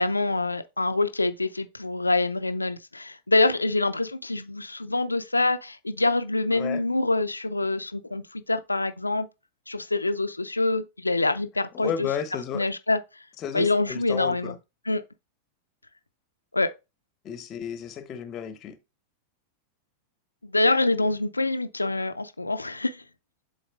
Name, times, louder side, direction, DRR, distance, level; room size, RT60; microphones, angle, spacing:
voice 1, 0.0-9.3 9.7-12.1 12.5-13.0 13.5-14.6 14.9-15.0 16.5-16.7 20.4-23.0, left 2 dB, 80° left, 0.6 m, -25 dB
voice 2, 11.7-12.7 13.4-14.6 17.2-18.8, left 8 dB, 30° left, 0.9 m, -33 dB
11.5 x 3.9 x 2.3 m
figure-of-eight pair, 90°, 0 cm